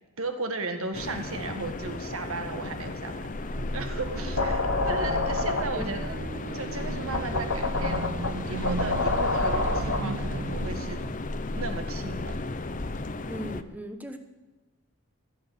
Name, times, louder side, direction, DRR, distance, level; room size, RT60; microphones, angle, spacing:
voice 1, 0.2-6.2 6.5-8.1 8.5-11.0 11.5-12.4, right 3 dB, 70° right, 6 dB, 1.8 m, -35 dB
sound 1, 0.9-13.6, left 2 dB, 35° left, 0.7 m, -36 dB
sound 2, 3.3-12.5, left 3 dB, 60° left, 1.2 m, -30 dB
sound 3, 3.5-11.2, right 3 dB, 50° right, 0.5 m, -37 dB
voice 2, 13.3-14.2, equal, 5° right, 6 dB, 1.1 m, -37 dB
15.5 x 7.9 x 8.3 m, 1.2 s
head